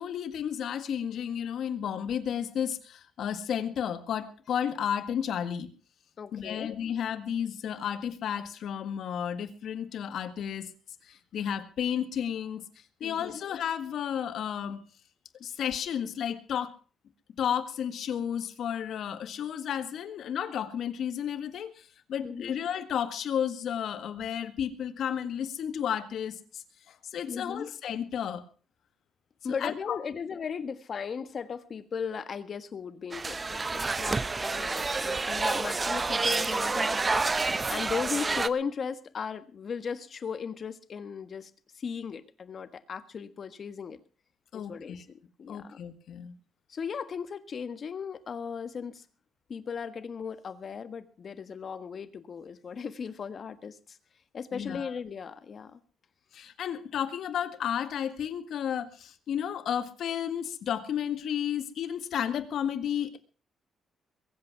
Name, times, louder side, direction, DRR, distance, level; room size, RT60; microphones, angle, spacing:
voice 1, 0.0-5.7 6.3-10.7 11.0-14.8 15.4-16.8 17.4-28.4 29.6-30.0 44.5-45.0 45.5-46.3 54.5-54.9 56.3-63.2, left 9 dB, 70° left, 10 dB, 1.8 m, -32 dB
voice 2, 6.2-6.7 13.0-13.3 22.2-22.5 27.3-27.7 29.4-44.0 44.5-45.8 46.7-49.0 49.5-54.0 54.3-55.8, left 6 dB, 45° left, 11 dB, 1.5 m, -37 dB
Ambiente Bar, 33.1-38.5, right 3 dB, 25° right, 0.8 m, -28 dB
22.0 x 8.5 x 6.0 m, 0.39 s
cardioid pair, 115°, 0 cm